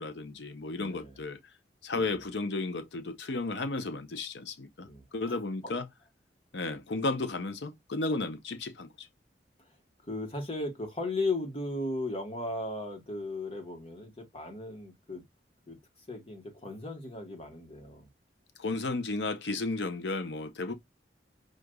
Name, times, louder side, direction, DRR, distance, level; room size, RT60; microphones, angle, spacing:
voice 1, 0.0-1.4 1.8-5.9 6.5-9.1 18.6-20.7, left 3 dB, 80° left, 0.7 m, -33 dB
voice 2, 0.7-1.2 4.8-5.4 10.1-15.2 15.7-15.8 16.1-18.1, left 2 dB, 30° left, 1.2 m, -36 dB
6.2 x 2.5 x 2.2 m
head